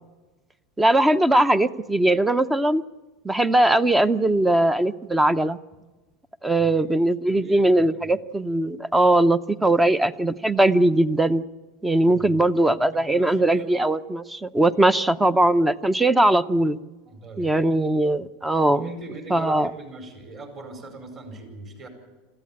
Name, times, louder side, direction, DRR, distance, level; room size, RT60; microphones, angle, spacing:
voice 1, 0.8-2.8 3.2-5.6 6.4-11.4 11.8-16.8 17.4-18.9 19.3-19.7, right 1 dB, 10° right, 15 dB, 0.6 m, -20 dB
voice 2, 6.6-6.9 7.3-8.1 9.7-9.8 11.9-12.4 12.9-13.7 17.0-17.6 18.7-21.9, right 2 dB, 35° right, 5 dB, 4.9 m, -41 dB
27.5 x 14.5 x 8.8 m, 1.2 s
supercardioid pair, 140°, 0 cm